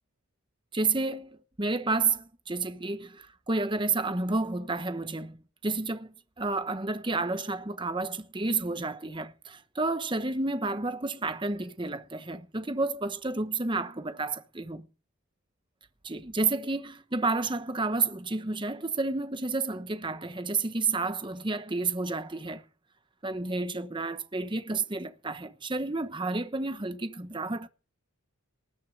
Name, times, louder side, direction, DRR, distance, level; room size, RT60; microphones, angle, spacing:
voice 1, 0.7-14.9 16.0-22.6 23.2-27.7, right 3 dB, 20° right, 1.0 m, -31 dB
19.5 x 6.6 x 6.5 m
head